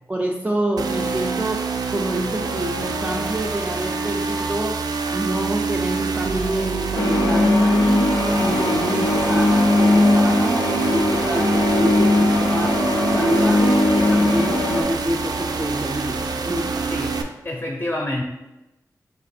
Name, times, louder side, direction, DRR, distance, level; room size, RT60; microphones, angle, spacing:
voice 1, 0.1-4.8 5.1-16.9, right 1 dB, 20° right, 1 dB, 0.3 m, -27 dB
sound 1, 0.8-17.2, right 4 dB, 90° right, 0.4 m, -26 dB
sound 2, 7.0-14.8, left 1 dB, 90° left, 0.6 m, -19 dB
voice 2, 16.9-18.2, left 1 dB, 30° left, 1 dB, 0.5 m, -28 dB
3.3 x 2.9 x 4.2 m, 1.0 s
wide cardioid pair, 80°, 7 cm